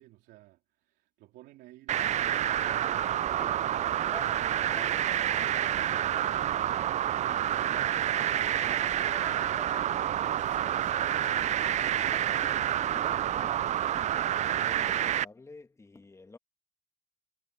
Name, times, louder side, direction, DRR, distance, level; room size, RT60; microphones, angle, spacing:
voice 1, 0.0-6.2, right 16 dB, 90° right, 3.0 m, -56 dB
sound 1, 1.9-15.2, right 11 dB, 45° right, 0.4 m, -28 dB
sound 2, 2.2-14.1, right 1 dB, 5° right, 2.3 m, -48 dB
voice 2, 13.8-16.4, left 3 dB, 15° left, 1.8 m, -52 dB
cardioid pair, 110°, 17 cm